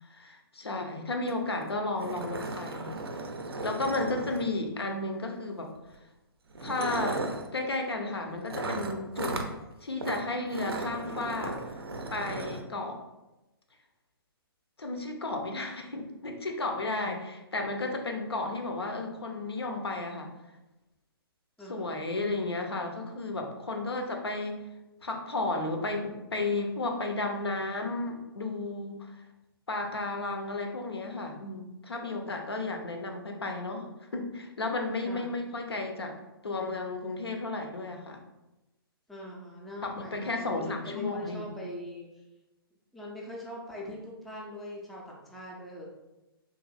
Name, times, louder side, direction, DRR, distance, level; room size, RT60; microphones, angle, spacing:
voice 1, 0.0-2.9 3.6-5.7 6.6-7.3 7.5-9.4 9.8-11.7 12.1-13.0 14.8-20.3 21.7-24.6 25.0-29.2 29.7-33.9 34.1-36.2 36.4-38.2 39.8-41.5, left 2 dB, 85° left, 3 dB, 0.5 m, -33 dB
sound 1, 1.3-1.4 1.6-1.7 2.0-4.8 5.8-6.0 6.5-7.5 8.5-9.5 10.0-10.2 10.5-12.6, right 2 dB, 75° right, 0.4 m, -36 dB
voice 2, 3.8-4.5 21.6-22.3 35.0-35.4 39.1-42.2 42.9-45.8, left 1 dB, ahead, -4 dB, 0.3 m, -42 dB
2.9 x 2.6 x 2.3 m, 1.0 s
figure-of-eight pair, 125°, 13 cm